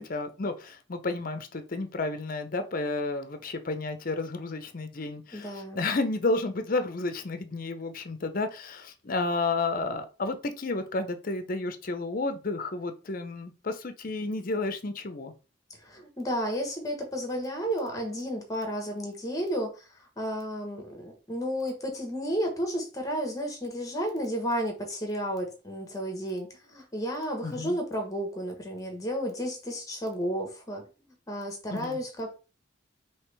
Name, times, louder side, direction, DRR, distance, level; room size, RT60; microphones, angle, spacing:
voice 1, 0.0-15.3 27.4-27.8 31.7-32.0, left 3 dB, 45° left, 0.6 m, -31 dB
voice 2, 5.3-5.9 15.8-19.7 20.2-30.8 31.3-32.3, equal, 20° left, 1.2 m, -32 dB
4.9 x 2.9 x 3.3 m
head